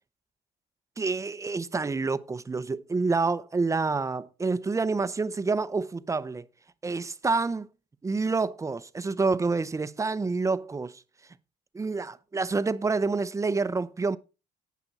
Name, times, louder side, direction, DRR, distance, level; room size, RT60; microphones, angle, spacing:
voice 1, 1.0-6.5 6.8-7.7 8.0-11.0 11.7-14.2, right 4 dB, 20° right, 0.7 m, -28 dB
17.5 x 5.9 x 4.1 m
cardioid pair, 110°, 17 cm